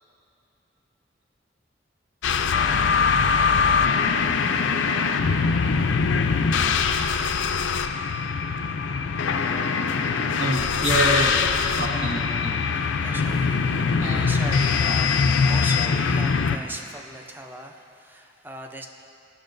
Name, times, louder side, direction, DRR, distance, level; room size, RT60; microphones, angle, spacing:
sound 1, 2.2-16.6, left 5 dB, 75° left, 0.4 m, -22 dB
voice 1, 10.4-11.4 11.7-12.6 14.0-14.2, right 1 dB, 75° right, -4 dB, 1.7 m, -26 dB
voice 2, 12.8-18.9, right 1 dB, 10° right, 3 dB, 0.5 m, -38 dB
17.0 x 6.2 x 2.6 m, 2.7 s
head